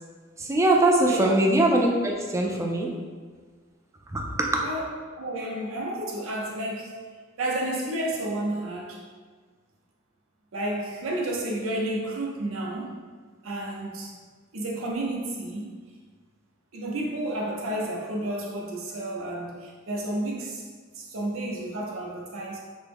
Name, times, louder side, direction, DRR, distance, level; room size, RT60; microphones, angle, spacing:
voice 1, 0.4-2.9 4.1-4.6, right 1 dB, 15° right, 0 dB, 0.3 m, -22 dB
voice 2, 5.2-6.9 7.4-9.0 10.5-12.9 13.4-14.1 14.5-15.7 16.7-20.7 20.9-22.6, right 1 dB, 80° right, -2 dB, 0.6 m, -31 dB
3.4 x 2.0 x 3.4 m, 1.5 s
head